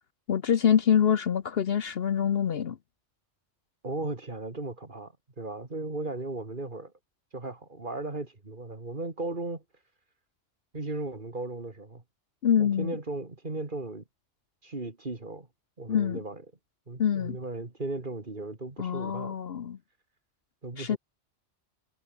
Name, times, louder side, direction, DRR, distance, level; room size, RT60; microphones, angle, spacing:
voice 1, 0.3-2.8 12.4-13.0 15.9-16.2 17.0-17.4 18.8-19.8 20.8-21.0, left 8 dB, 55° left, 1.0 m, -25 dB
voice 2, 3.8-6.9 7.3-9.6 10.7-12.0 12.6-14.0 14.6-15.5 15.8-16.4 16.9-19.4 20.6-21.0, right 2 dB, 40° right, 2.8 m, -36 dB
omnidirectional pair, 1.2 m